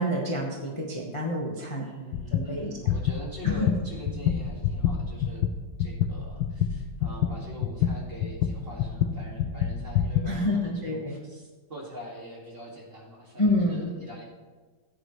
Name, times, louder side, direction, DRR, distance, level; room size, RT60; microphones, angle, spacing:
voice 1, 0.0-1.8 2.3-2.7 3.4-3.8 10.2-11.2 13.4-13.9, left 1 dB, 20° left, -2 dB, 1.2 m, -28 dB
voice 2, 1.7-5.4 5.8-14.2, equal, 30° right, -2 dB, 2.2 m, -43 dB
sound 1, 2.1-2.5 2.8-10.3, left 9 dB, 90° left, 1.5 m, -27 dB
16.0 x 10.5 x 3.2 m, 1.4 s
omnidirectional pair, 2.1 m